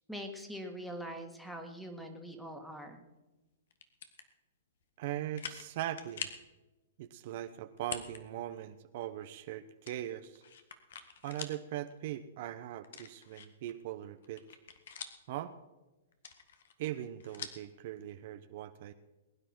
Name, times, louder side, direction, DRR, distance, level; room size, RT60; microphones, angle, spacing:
voice 1, 0.1-3.0, equal, ahead, 4 dB, 2.1 m, -43 dB
sound 1, 3.7-4.3 4.8-4.9 5.4-5.7 6.0-6.5 7.8-8.2 8.6-8.7 9.9-11.6 12.0-12.1 12.8-13.7 14.1-15.4 16.1-17.7, left 7 dB, 70° left, 1.7 m, -45 dB
voice 2, 5.0-6.3 7.0-10.4 11.2-14.4 15.3-15.5 16.8-18.9, right 12 dB, 55° right, 9 dB, 0.9 m, -40 dB
21.0 x 9.9 x 4.6 m, 1.1 s
hypercardioid pair, 125°, 0 cm